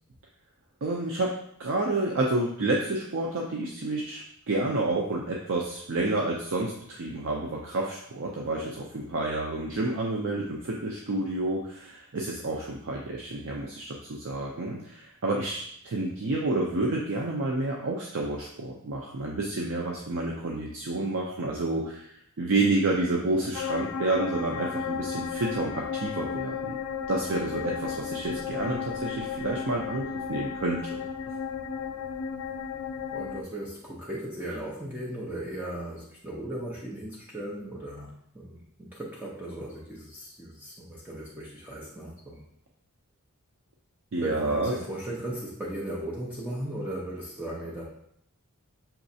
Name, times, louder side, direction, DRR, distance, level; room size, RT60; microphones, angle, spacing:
voice 1, 0.8-1.3 1.6-26.8 27.1-31.0 44.1-44.7, right 2 dB, 60° right, -1 dB, 0.5 m, -29 dB
sound 1, 23.5-33.4, left 7 dB, 85° left, 0.4 m, -34 dB
voice 2, 33.1-42.4 44.2-47.8, right 1 dB, 10° right, -6 dB, 0.6 m, -37 dB
5.8 x 3.1 x 2.7 m, 0.71 s
head